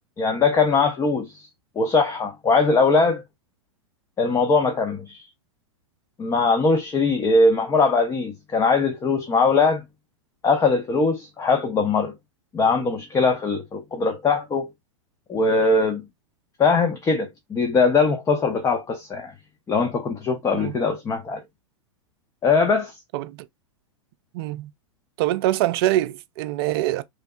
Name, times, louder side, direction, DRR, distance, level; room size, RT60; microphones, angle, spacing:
voice 1, 0.2-1.5 1.8-3.2 4.2-5.2 6.2-9.8 10.4-12.1 12.5-14.7 15.3-16.0 16.6-19.3 19.7-21.4 22.4-22.9, left 4 dB, 20° left, 0.5 m, -21 dB
voice 2, 24.3-24.7 25.2-27.0, right 15 dB, 50° right, 0.4 m, -24 dB
3.1 x 2.7 x 2.3 m
hypercardioid pair, 105°, 16 cm